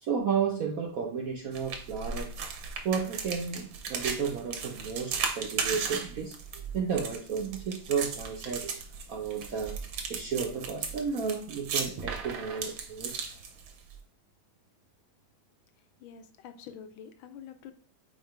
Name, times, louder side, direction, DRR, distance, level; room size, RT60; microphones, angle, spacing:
voice 1, 0.0-2.4 2.8-8.8 9.1-9.8 10.1-13.1, right 6 dB, 70° right, 2 dB, 0.8 m, -32 dB
sound 1, 1.5-14.0, right 6 dB, 85° right, 1.8 m, -36 dB
voice 2, 16.0-17.7, left 8 dB, 80° left, 8 dB, 1.4 m, -46 dB
4.7 x 4.4 x 4.5 m, 0.42 s
omnidirectional pair, 2.3 m